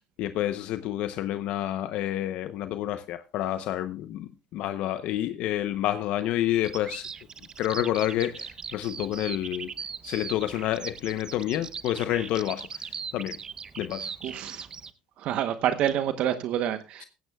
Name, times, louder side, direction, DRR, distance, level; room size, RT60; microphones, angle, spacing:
voice 1, 0.2-7.1 7.6-9.7 10.0-13.4 13.8-14.3, left 13 dB, 75° left, 0.8 m, -29 dB
Bird vocalization bird call bird song, 6.5-14.9, right 6 dB, 35° right, 0.8 m, -39 dB
voice 2, 14.2-14.7 15.2-17.0, right 10 dB, 65° right, 0.9 m, -27 dB
16.0 x 15.5 x 2.3 m
supercardioid pair, 90°, 2 cm